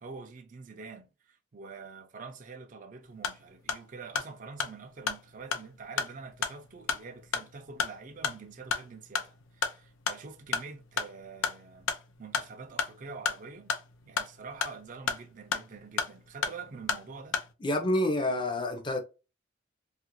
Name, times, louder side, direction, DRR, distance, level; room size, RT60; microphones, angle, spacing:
voice 1, 0.0-11.9 12.2-13.7 14.1-17.4, right 4 dB, 40° right, 0.4 m, -46 dB
sound 1, 3.0-17.5, left 6 dB, 85° left, 0.5 m, -35 dB
voice 2, 17.6-19.0, left 1 dB, 25° left, 0.5 m, -28 dB
2.8 x 2.4 x 2.9 m
head